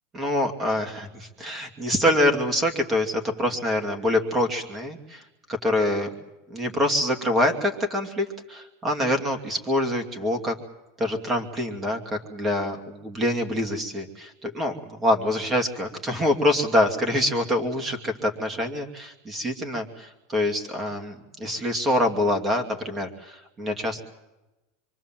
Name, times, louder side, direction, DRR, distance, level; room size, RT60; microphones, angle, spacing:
voice 1, 0.1-5.2 5.5-6.1 6.5-10.5 11.0-24.0, left 1 dB, 15° right, 6 dB, 2.5 m, -25 dB
27.0 x 24.0 x 7.6 m, 1.0 s
supercardioid pair, 170°, 0 cm